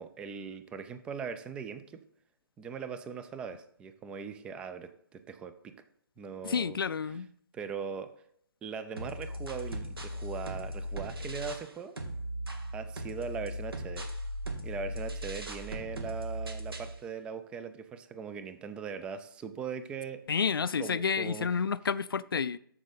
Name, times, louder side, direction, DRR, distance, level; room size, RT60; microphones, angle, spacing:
voice 1, 0.0-2.0 2.6-5.8 6.2-6.8 7.1-7.2 7.5-8.1 8.6-12.0 12.7-14.1 14.6-20.2 20.8-21.5, right 6 dB, 10° right, 11 dB, 0.4 m, -40 dB
voice 2, 6.4-7.3 20.3-22.6, left 6 dB, 70° left, 17 dB, 0.5 m, -30 dB
sound 1, 9.0-11.7 12.0-17.0, equal, 75° right, 1.7 m, -38 dB
13.0 x 5.1 x 4.0 m, 0.67 s
figure-of-eight pair, 140°, 12 cm